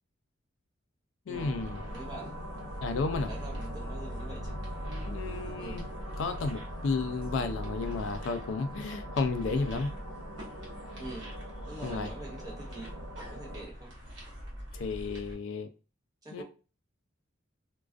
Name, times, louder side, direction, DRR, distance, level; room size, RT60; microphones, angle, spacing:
voice 1, 1.3-1.8 2.8-3.3 5.1-5.9 6.2-9.9 11.8-12.1 14.7-15.7 16.3-16.4, left 4 dB, 70° left, 8 dB, 0.3 m, -32 dB
sound 1, 1.3-13.7, equal, 90° right, 0.9 m, -41 dB
sound 2, 1.6-15.3, equal, 60° right, 0.9 m, -45 dB
voice 2, 1.9-2.3 3.2-4.6 5.6-5.8 9.5-9.6 11.0-11.3 11.7-12.9 13.2-13.9 16.2-16.4, right 2 dB, 20° right, -2 dB, 0.7 m, -44 dB
2.3 x 2.2 x 2.4 m, 0.33 s
head